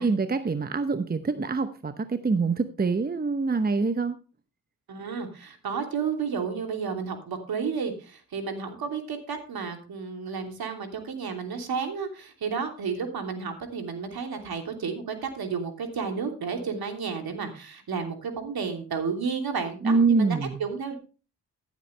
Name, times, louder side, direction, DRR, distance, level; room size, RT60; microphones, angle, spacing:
voice 1, 0.0-4.2 19.8-20.6, right 4 dB, 25° right, 10 dB, 0.9 m, -25 dB
voice 2, 4.9-20.9, right 5 dB, 60° right, 5 dB, 3.1 m, -32 dB
15.0 x 8.4 x 3.3 m, 0.33 s
supercardioid pair, 65°, 41 cm